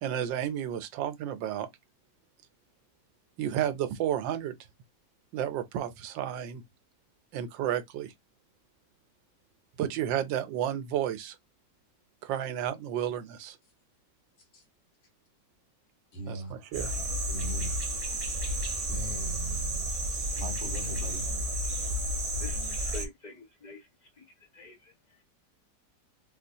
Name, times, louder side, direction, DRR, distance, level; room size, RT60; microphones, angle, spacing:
voice 1, 0.0-1.7 3.4-4.6 5.3-6.6 7.3-8.1 9.8-11.4 12.2-13.6 16.3-16.9, right 10 dB, 85° right, 1.4 m, -32 dB
voice 2, 16.1-16.5 17.3-17.8 18.9-19.9 20.4-21.3, right 1 dB, 85° left, 2.2 m, -38 dB
sound 1, 16.7-23.1, equal, 30° right, 0.7 m, -32 dB
voice 3, 22.4-25.2, left 3 dB, 25° left, 1.2 m, -47 dB
4.2 x 2.4 x 2.7 m
omnidirectional pair, 2.0 m